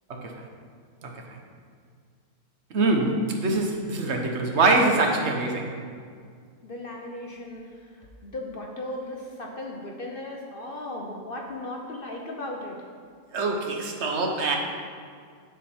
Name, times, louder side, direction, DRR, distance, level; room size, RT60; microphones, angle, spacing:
voice 1, 2.7-5.7 13.3-14.6, right 3 dB, 55° right, 2 dB, 1.1 m, -24 dB
voice 2, 6.6-12.8, left 1 dB, 50° left, 0 dB, 0.8 m, -37 dB
7.5 x 7.5 x 4.3 m, 2.1 s
omnidirectional pair, 1.4 m